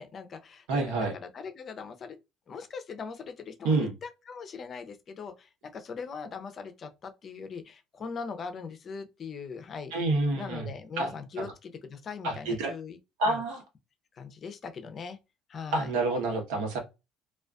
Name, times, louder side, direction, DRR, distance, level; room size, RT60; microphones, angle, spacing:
voice 1, 0.0-2.2 2.5-9.9 10.3-13.0 13.3-13.4 14.2-15.2 15.5-15.9, left 5 dB, 40° left, 0.6 m, -40 dB
voice 2, 0.7-1.1 3.6-3.9 9.9-10.7 11.0-11.1 11.4-11.5 12.2-12.7 13.2-13.6 15.7-16.8, right 2 dB, 80° right, 1.0 m, -28 dB
2.4 x 2.3 x 2.3 m
supercardioid pair, 105°, 0 cm